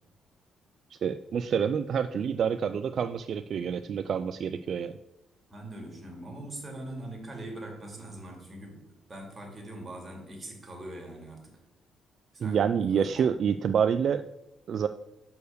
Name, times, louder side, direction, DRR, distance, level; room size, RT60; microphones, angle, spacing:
voice 1, 1.0-4.9 12.4-14.2 14.7-14.9, right 7 dB, 60° right, 10 dB, 0.3 m, -27 dB
voice 2, 5.5-11.6 12.3-12.6 12.9-13.3, right 1 dB, 25° right, 1 dB, 2.6 m, -42 dB
6.4 x 4.6 x 6.7 m, 0.89 s
cardioid pair, 90°, 0 cm